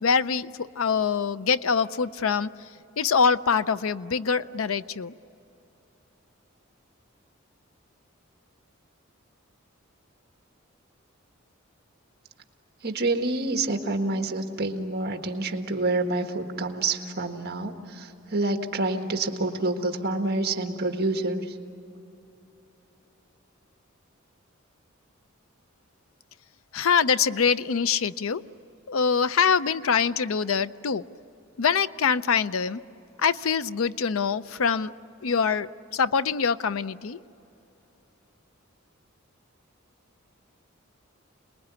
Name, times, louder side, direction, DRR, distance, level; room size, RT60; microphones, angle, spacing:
voice 1, 0.0-0.5 0.8-2.5 3.0-5.1 26.7-28.4 28.9-31.0 31.6-32.8 33.2-34.9 35.2-37.2, left 6 dB, 80° left, 15 dB, 0.6 m, -24 dB
voice 2, 12.8-21.4, right 2 dB, 50° right, 5 dB, 1.6 m, -27 dB
28.0 x 20.5 x 9.6 m, 3.0 s
head